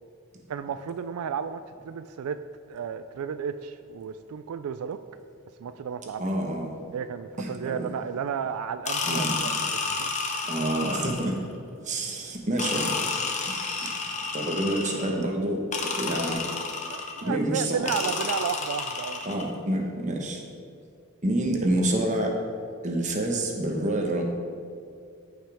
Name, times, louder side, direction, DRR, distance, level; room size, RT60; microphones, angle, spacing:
voice 1, 0.5-2.4 2.7-5.0 5.6-6.2 6.9-10.1 16.9-19.4, right 7 dB, 85° right, 11 dB, 0.3 m, -33 dB
voice 2, 6.2-6.8 7.4-7.9 9.0-9.4 10.4-11.4 11.8-13.0 13.8-14.0 14.3-16.4 17.2-17.9 19.2-20.4 21.2-22.4 22.8-24.2, right 1 dB, 35° right, 1 dB, 1.1 m, -28 dB
sound 1, 8.9-11.4 12.6-15.2 15.7-17.3 17.9-19.5, left 4 dB, 30° left, 0.9 m, -30 dB
14.0 x 5.6 x 3.5 m, 2.4 s
head